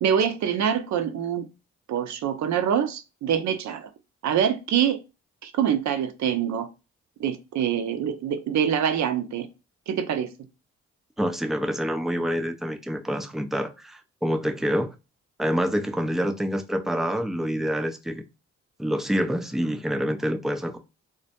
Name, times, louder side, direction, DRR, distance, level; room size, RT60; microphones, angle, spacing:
voice 1, 0.0-1.5 1.9-3.9 4.2-5.0 5.4-6.7 7.2-9.5 9.9-10.3, right 8 dB, 55° right, 0.5 m, -25 dB
voice 2, 11.2-14.9 15.4-18.2 18.8-20.8, equal, ahead, 0.3 m, -27 dB
2.1 x 2.1 x 2.8 m
hypercardioid pair, 45°, 34 cm